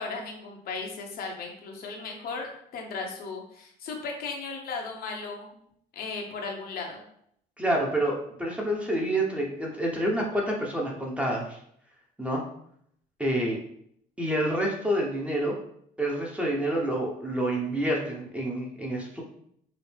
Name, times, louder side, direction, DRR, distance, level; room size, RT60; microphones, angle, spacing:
voice 1, 0.0-5.5 5.9-7.0, left 4 dB, 65° left, 1 dB, 0.9 m, -36 dB
voice 2, 7.6-11.6 12.2-12.4 13.2-13.6 14.2-15.6 16.0-19.2, right 1 dB, 5° right, -1 dB, 0.8 m, -28 dB
5.0 x 2.0 x 3.3 m, 0.68 s
cardioid pair, 110°, 17 cm